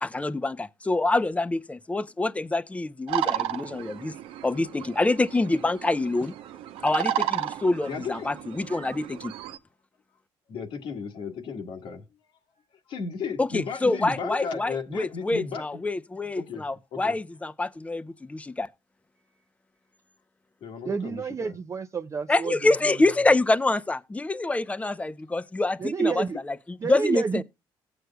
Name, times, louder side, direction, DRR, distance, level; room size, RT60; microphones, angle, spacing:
voice 1, 0.0-4.1 4.4-6.3 6.8-9.3 13.4-18.7 22.3-27.4, left 2 dB, 15° left, 0.6 m, -26 dB
sound 1, 3.1-9.6, right 11 dB, 85° right, 0.8 m, -33 dB
voice 2, 7.9-8.3 10.5-12.0 12.9-15.6 16.4-16.6 16.9-17.1 20.6-21.5, left 5 dB, 70° left, 1.6 m, -34 dB
voice 3, 20.9-23.0 25.8-26.4 26.8-27.4, right 5 dB, 35° right, 0.5 m, -29 dB
17.0 x 7.9 x 2.2 m
cardioid pair, 95°, 9 cm